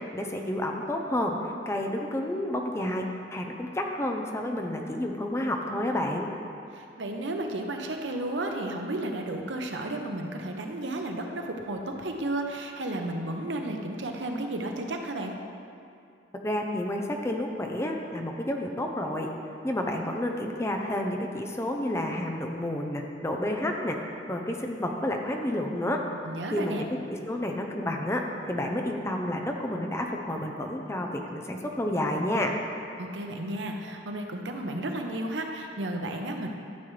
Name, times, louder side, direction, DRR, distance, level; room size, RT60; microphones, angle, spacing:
voice 1, 0.1-1.4 1.7-6.3 16.4-19.3 19.6-24.0 24.3-26.0 26.5-32.6, left 1 dB, 15° left, 2 dB, 0.6 m, -30 dB
voice 2, 6.7-15.4 26.2-26.8 33.0-36.5, right 1 dB, 80° right, 3 dB, 0.9 m, -33 dB
12.5 x 7.5 x 3.3 m, 2.5 s
head